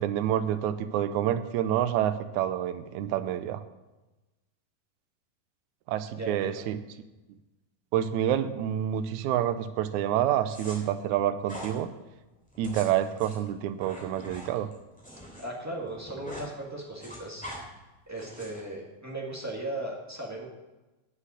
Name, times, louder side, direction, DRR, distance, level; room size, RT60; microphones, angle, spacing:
voice 1, 0.0-3.6 5.9-6.8 7.9-11.9 12.6-14.7, right 11 dB, 85° right, 10 dB, 1.8 m, -28 dB
voice 2, 6.1-6.6 15.4-17.7 18.1-20.5, right 1 dB, 20° right, -3 dB, 0.4 m, -37 dB
sound 1, 10.5-10.8 11.4-11.7 12.5-15.4 15.7-16.5 16.8-17.6 18.2-18.6, equal, ahead, 2.8 m, -43 dB
8.3 x 8.1 x 8.0 m, 1.1 s
omnidirectional pair, 4.1 m